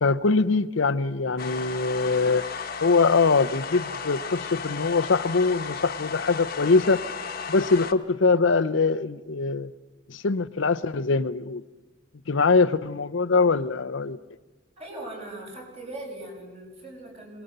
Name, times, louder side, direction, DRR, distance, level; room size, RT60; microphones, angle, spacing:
voice 1, 0.0-2.4 2.8-7.0 7.5-9.7 10.1-11.6 12.3-14.2, left 4 dB, 80° left, 10 dB, 0.7 m, -23 dB
sound 1, 1.4-7.9, left 5 dB, 50° left, 1.2 m, -34 dB
voice 2, 14.8-17.4, right 1 dB, 35° right, 0 dB, 5.8 m, -40 dB
26.0 x 19.5 x 6.7 m, 1.2 s
head